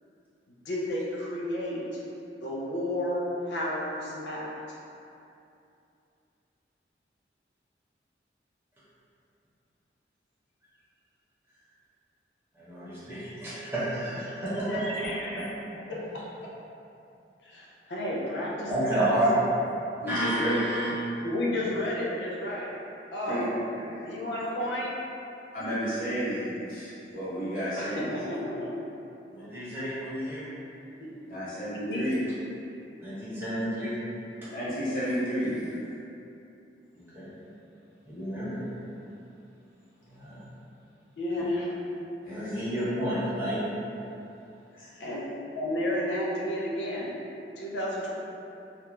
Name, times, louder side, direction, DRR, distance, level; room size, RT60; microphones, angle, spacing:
voice 1, 0.7-1.8 2.4-4.5 14.7-15.4 17.4-19.2 21.2-22.7 23.1-23.5 24.0-24.9 27.8-28.8 29.4-29.6 31.9-32.0 41.2-41.8 45.0-45.3 45.5-47.1 47.6-48.1, left 1 dB, 80° left, -5 dB, 0.5 m, -32 dB
voice 2, 12.6-14.8 15.4-15.5 18.7-19.6 20.1-20.9 29.3-30.4 33.0-33.9 37.1-37.3 38.0-38.6 40.1-40.4 41.3-41.4 42.2-43.6, right 1 dB, 15° right, -12 dB, 0.7 m, -30 dB
voice 3, 20.0-20.6 23.2-23.4 23.7-24.0 25.5-28.1 31.3-32.1 34.5-35.5 42.2-42.5 44.7-45.2, equal, 50° left, -12 dB, 1.0 m, -32 dB
2.4 x 2.2 x 3.0 m, 2.7 s
head